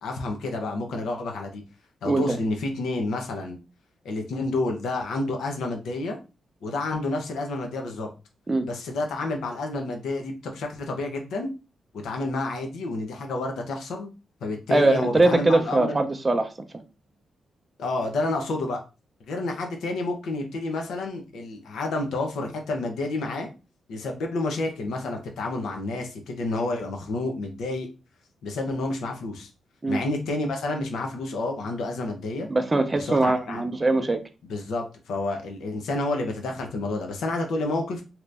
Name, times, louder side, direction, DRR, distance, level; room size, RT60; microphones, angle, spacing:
voice 1, 0.0-1.6 2.0-3.6 4.0-6.2 6.6-8.1 8.6-11.5 12.0-14.1 14.4-16.0 17.8-18.8 19.3-23.5 23.9-27.9 28.4-29.5 29.9-32.5 32.9-33.6 34.5-38.0, left 2 dB, 85° left, 0.8 m, -29 dB
voice 2, 2.0-2.4 8.5-8.7 14.7-16.8 29.8-30.0 32.5-34.2, right 2 dB, 20° right, 0.5 m, -22 dB
2.9 x 2.6 x 3.3 m
cardioid pair, 130°, 0 cm